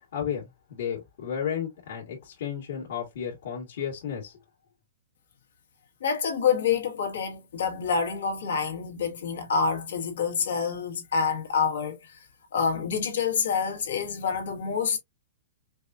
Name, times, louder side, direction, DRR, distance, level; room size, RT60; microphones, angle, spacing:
voice 1, 0.1-4.4, left 8 dB, 65° left, 1.7 m, -33 dB
voice 2, 6.0-12.2 12.5-15.0, left 6 dB, 85° left, 1.6 m, -27 dB
5.2 x 2.4 x 2.6 m
hypercardioid pair, 155°, 0 cm